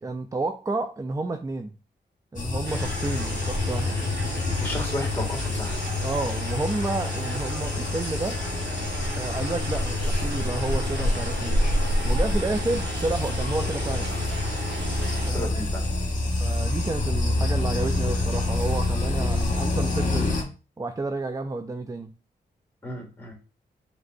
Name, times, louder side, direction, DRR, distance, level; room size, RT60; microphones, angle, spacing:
voice 1, 0.0-1.7 2.3-4.0 6.0-8.4 9.2-11.6 12.0-14.1 15.3-15.7 16.4-20.4 20.8-22.1, right 2 dB, 20° right, 0.4 m, -30 dB
sound 1, 2.4-20.4, left 2 dB, 45° left, 1.4 m, -27 dB
sound 2, 2.6-15.3, right 3 dB, 70° right, 1.3 m, -36 dB
voice 2, 4.6-5.8 15.3-15.8 22.8-23.3, left 1 dB, 10° left, 2.3 m, -33 dB
5.0 x 3.2 x 2.6 m
cardioid pair, 65°, 19 cm